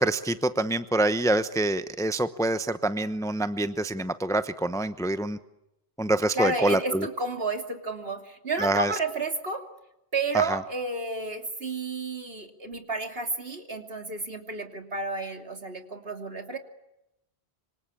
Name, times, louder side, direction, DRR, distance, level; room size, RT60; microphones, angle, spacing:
voice 1, 0.0-5.4 6.0-7.1 8.6-8.9 10.3-10.6, right 2 dB, 5° left, 11 dB, 0.8 m, -26 dB
voice 2, 6.3-9.6 10.1-16.6, right 3 dB, 65° right, 5 dB, 3.2 m, -31 dB
26.5 x 25.5 x 8.7 m, 0.88 s
omnidirectional pair, 1.1 m